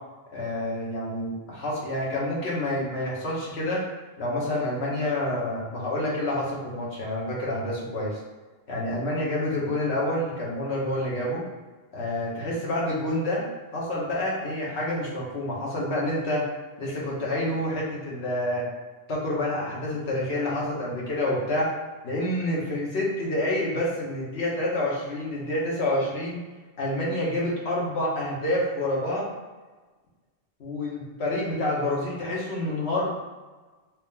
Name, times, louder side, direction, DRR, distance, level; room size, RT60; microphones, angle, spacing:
voice 1, 0.3-3.8 4.2-8.2 8.7-11.4 11.9-13.4 13.7-16.5 16.8-18.7 19.1-21.7 22.0-26.4 26.8-29.3 30.6-33.1, left 1 dB, 80° left, -5 dB, 1.4 m, -28 dB
3.4 x 3.0 x 3.7 m, 1.3 s
omnidirectional pair, 1.1 m